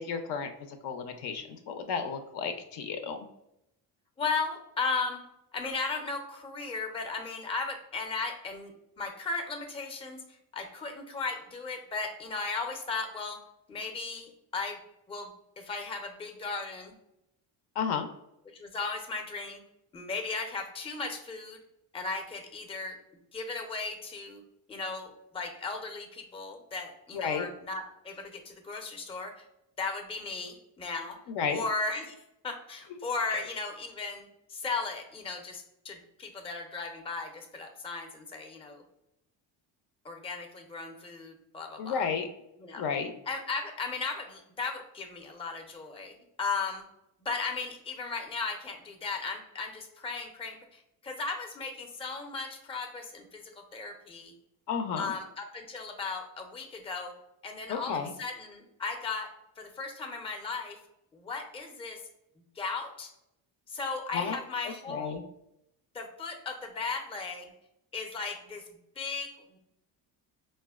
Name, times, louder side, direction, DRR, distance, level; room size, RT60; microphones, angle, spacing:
voice 1, 0.0-3.3 17.8-18.1 27.1-27.5 31.3-31.6 33.3-33.4 41.8-42.3 42.7-43.1 54.7-55.1 57.7-58.1 64.1-64.4 64.9-65.2, left 6 dB, 60° left, 7 dB, 0.5 m, -32 dB
voice 2, 4.2-5.2 5.5-10.2 10.5-13.4 13.7-14.8 15.1-16.9 18.5-19.6 19.9-21.6 21.9-23.0 23.3-24.4 24.7-29.4 29.8-31.2 31.5-32.2 32.4-38.8 40.0-42.1 42.6-42.8 43.3-46.8 47.2-54.3 55.0-57.1 57.4-59.3 59.6-60.8 61.1-62.0 62.6-63.1 63.7-65.2 65.9-67.5 67.9-68.6 69.0-69.6, left 4 dB, 15° left, 4 dB, 0.5 m, -36 dB
4.1 x 2.1 x 2.3 m, 0.82 s
supercardioid pair, 75°, 46 cm